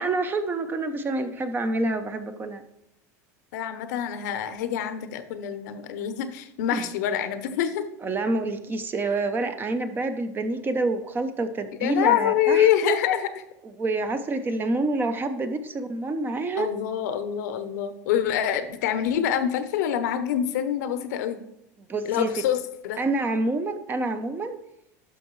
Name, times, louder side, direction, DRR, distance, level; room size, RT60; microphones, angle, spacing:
voice 1, 0.0-2.6 6.7-6.9 8.0-13.0 13.6-16.7 21.9-22.3 23.0-24.6, right 2 dB, 20° right, 10 dB, 0.7 m, -27 dB
voice 2, 3.5-7.9 11.8-13.3 16.6-21.4 22.1-23.0, left 10 dB, 80° left, 11 dB, 0.8 m, -25 dB
11.0 x 6.0 x 3.1 m, 0.83 s
supercardioid pair, 125°, 9 cm